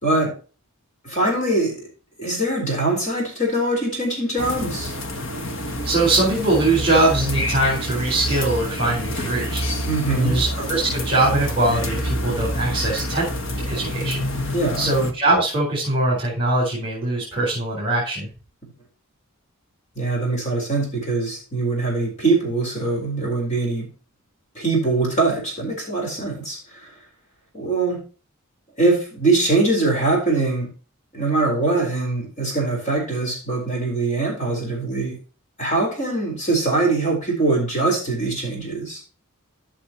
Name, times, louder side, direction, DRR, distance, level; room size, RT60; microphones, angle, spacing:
voice 1, 0.0-0.3 1.0-1.8 2.2-4.9 9.8-10.4 14.5-14.9 20.0-23.9 24.5-26.9 27.5-28.0 28.8-30.7 31.1-35.2 35.6-39.0, right 2 dB, 35° left, 0 dB, 4.4 m, -22 dB
sound 1, 4.4-15.1, left 1 dB, 60° left, 1.4 m, -27 dB
voice 2, 5.8-9.6 10.1-13.2 13.7-14.3 14.8-18.3, right 2 dB, 25° right, -4 dB, 4.4 m, -21 dB
14.0 x 6.2 x 3.0 m, 0.34 s
head